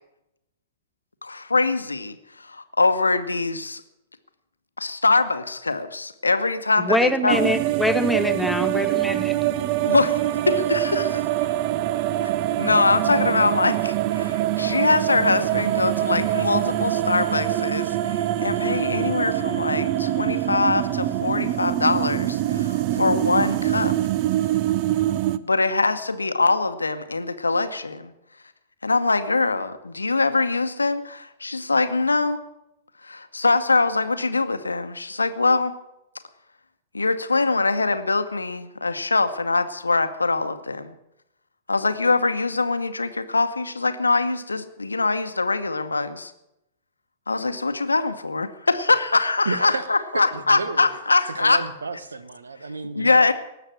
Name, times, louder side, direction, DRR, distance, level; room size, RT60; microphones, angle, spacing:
voice 1, 1.2-3.8 4.8-7.4 9.8-11.5 12.6-24.0 25.4-28.1 28.8-32.4 33.0-35.7 36.9-40.9 41.7-46.3 47.3-51.6 52.9-53.3, left 3 dB, 80° left, 0.9 m, -23 dB
voice 2, 6.8-9.4, equal, ahead, 0.8 m, -23 dB
sound 1, 7.3-25.4, right 13 dB, 40° right, 0.5 m, -24 dB
voice 3, 49.4-50.9 51.3-53.3, right 3 dB, 70° right, 1.0 m, -32 dB
18.5 x 7.2 x 7.5 m
figure-of-eight pair, 105°, 0 cm